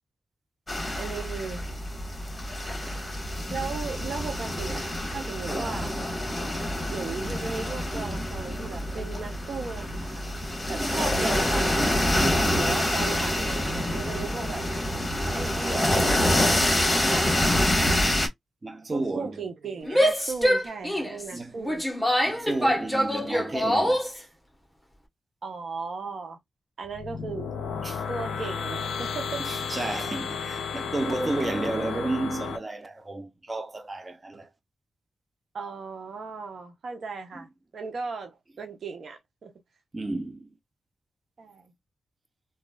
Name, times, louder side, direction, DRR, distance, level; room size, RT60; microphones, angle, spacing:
sound 1, 0.7-18.3, left 1 dB, 25° left, 1.5 m, -26 dB
voice 1, 0.9-1.6 3.5-6.0 6.9-10.2 10.7-14.7 15.3-17.9 18.9-21.8 25.4-26.4 26.8-27.5 28.1-29.4 35.5-37.5 37.7-39.5 41.4-41.7, right 4 dB, 70° right, 0.8 m, -36 dB
voice 2, 10.7-11.0 18.6-19.4 21.3-21.6 22.2-24.3 27.8-28.0 29.4-34.5 37.3-37.5 39.9-40.5, right 2 dB, 35° right, 0.8 m, -32 dB
Female speech woman speaking / Yell, 19.8-24.2, equal, ahead, 1.3 m, -24 dB
sound 2, 26.8-32.6, left 6 dB, 85° left, 0.4 m, -33 dB
3.1 x 2.5 x 2.4 m
supercardioid pair, 40°, 0 cm